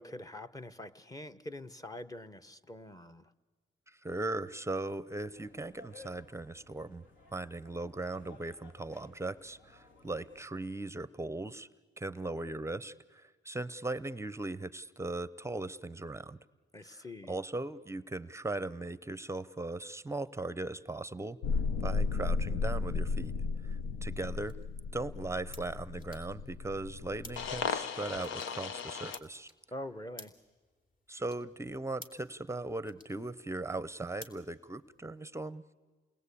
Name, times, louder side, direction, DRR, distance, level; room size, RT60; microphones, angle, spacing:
voice 1, 0.0-3.3 16.7-17.4 29.7-30.3, left 1 dB, 15° left, 11 dB, 1.1 m, -45 dB
voice 2, 3.9-7.0 7.3-11.7 12.0-16.4 16.8-21.4 21.8-23.3 23.7-24.6 24.9-29.5 31.1-35.6, right 2 dB, 15° right, 17 dB, 0.7 m, -38 dB
sound 1, 5.3-10.5, left 3 dB, 70° left, 3.1 m, -58 dB
sound 2, 21.4-29.2, left 4 dB, 85° left, 0.9 m, -35 dB
sound 3, 23.7-35.2, left 2 dB, 45° left, 2.9 m, -57 dB
28.5 x 20.5 x 8.5 m, 1.4 s
cardioid pair, 90°, 20 cm